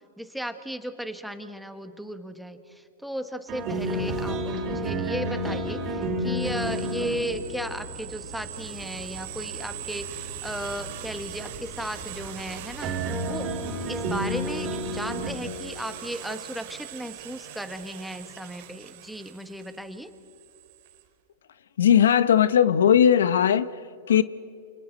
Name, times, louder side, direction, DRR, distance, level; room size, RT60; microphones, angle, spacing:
voice 1, 0.2-13.5 13.8-20.1, equal, ahead, 8 dB, 1.4 m, -35 dB
sound 1, 3.5-15.3, right 1 dB, 35° right, 4.6 m, -32 dB
sound 2, 6.4-21.0, right 13 dB, 55° right, 2.5 m, -42 dB
voice 2, 21.8-23.7 24.1-24.2, left 9 dB, 85° left, 15 dB, 0.9 m, -18 dB
29.5 x 28.5 x 4.1 m, 2.5 s
hypercardioid pair, 140°, 0 cm